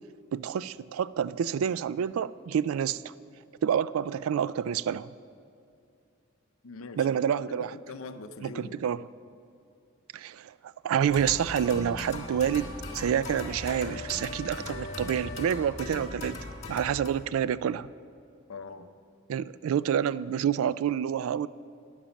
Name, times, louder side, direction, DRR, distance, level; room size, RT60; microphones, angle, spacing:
voice 1, 0.3-3.0 3.6-5.1 7.0-7.7 8.4-9.0 10.1-16.4 16.7-17.9 19.3-21.5, right 8 dB, 70° right, 19 dB, 0.3 m, -28 dB
voice 2, 6.6-7.1 7.5-8.8 18.5-18.9, left 4 dB, 75° left, 9 dB, 0.7 m, -42 dB
sound 1, 11.1-17.1, left 2 dB, 35° left, 1.5 m, -39 dB
13.0 x 10.0 x 5.2 m, 2.5 s
head